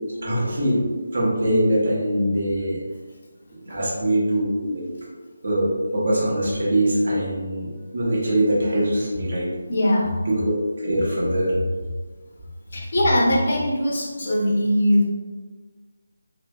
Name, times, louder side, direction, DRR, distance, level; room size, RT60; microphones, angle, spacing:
voice 1, 0.2-0.8 1.1-2.8 3.5-4.8 5.4-9.5 10.3-10.5 10.8-11.6, right 1 dB, 50° right, -5 dB, 1.0 m, -22 dB
voice 2, 9.7-10.2 12.7-15.1, left 1 dB, 45° left, -2 dB, 0.7 m, -21 dB
3.1 x 3.0 x 2.3 m, 1.4 s
figure-of-eight pair, 155°, 0 cm